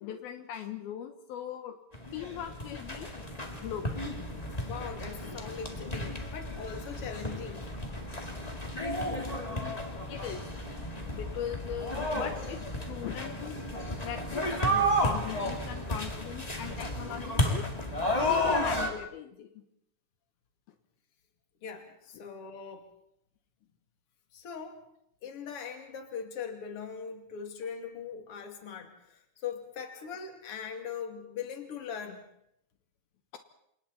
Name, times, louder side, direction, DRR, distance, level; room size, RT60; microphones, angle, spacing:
voice 1, 0.0-1.8 2.1-3.1 3.6-4.0 9.1-9.2 9.5-10.4 11.1-12.6 12.9-13.6 14.0-17.7 18.2-19.6 22.1-22.2, left 9 dB, 75° left, 7 dB, 2.9 m, -40 dB
sound 1, 1.9-18.9, equal, 15° left, 1.4 m, -32 dB
voice 2, 4.6-7.7 21.6-22.9 24.3-24.8 25.2-32.3, left 7 dB, 40° left, 4 dB, 3.0 m, -41 dB
29.0 x 27.0 x 4.2 m, 0.76 s
omnidirectional pair, 4.5 m